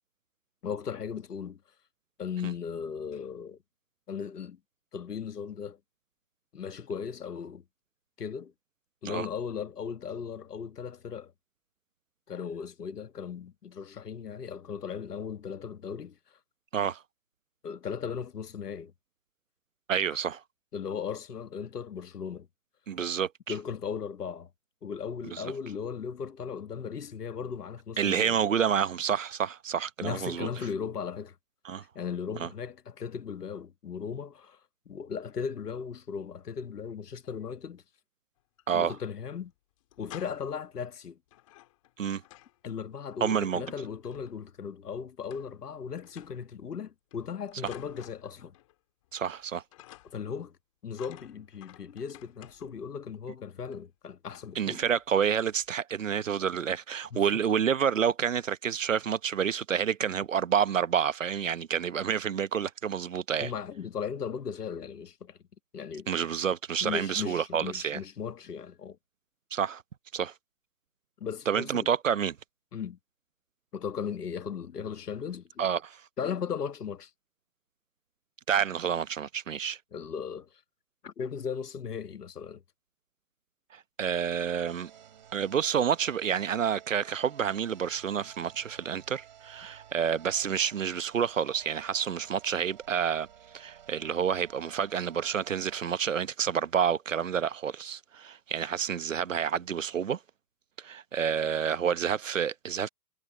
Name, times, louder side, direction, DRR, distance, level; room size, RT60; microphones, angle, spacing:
voice 1, 0.6-1.6 2.2-3.6 4.1-4.6 4.9-5.8 6.5-7.6 8.2-8.5 9.0-11.3 12.3-16.2 17.6-18.9 20.7-22.5 23.5-24.5 24.8-28.4 30.0-31.3 31.8-34.6 34.9-37.8 38.7-39.5 40.0-41.2 42.6-48.5 50.1-50.5 50.8-54.8 57.1-57.4 63.4-65.4 65.7-66.1 66.8-69.0 71.2-71.9 72.7-73.0 73.7-75.6 76.2-77.1 79.9-80.5 81.0-82.6, left 6 dB, 70° left, 1.6 m, -37 dB
voice 2, 19.9-20.4 22.9-23.5 25.3-25.5 28.0-30.5 31.6-31.8 32.4-32.5 38.7-39.0 42.0-42.2 43.2-43.6 49.1-49.6 54.5-63.5 66.1-68.0 69.5-69.8 70.1-70.3 71.5-72.4 75.6-76.0 78.5-79.8 83.7-84.9 85.3-93.3 93.5-100.2 100.8-102.9, right 8 dB, 50° right, 1.0 m, -29 dB
sound 1, 38.4-39.1 39.3-39.4 39.8-40.7 41.3-42.6 42.9-44.6 45.3-45.8 46.0-46.5 47.1-48.8 49.0-49.4 49.7-50.4 50.9-52.9 53.7-53.8 54.3-54.6 54.9-55.1 55.5-55.8, left 16 dB, 20° left, 3.5 m, -54 dB
sound 2, 84.7-96.0, right 10 dB, 30° right, 2.2 m, -54 dB
hypercardioid pair, 175°, 48 cm